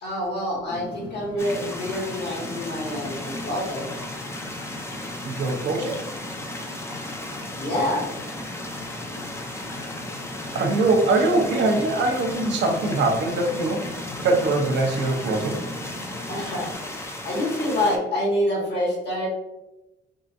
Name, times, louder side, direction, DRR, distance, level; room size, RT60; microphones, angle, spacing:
voice 1, 0.0-3.9 7.5-8.1 16.3-16.7 17.2-19.3, left 1 dB, 60° left, -3 dB, 1.5 m, -26 dB
sound 1, 0.7-16.7, left 1 dB, 90° left, 0.9 m, -39 dB
sound 2, 1.4-18.0, left 1 dB, 15° left, 0.5 m, -36 dB
voice 2, 5.2-6.0 10.5-13.9 14.2-15.6, right 2 dB, 65° right, 2 dB, 0.7 m, -22 dB
3.6 x 2.4 x 2.5 m, 0.99 s
cardioid pair, 90°, 20 cm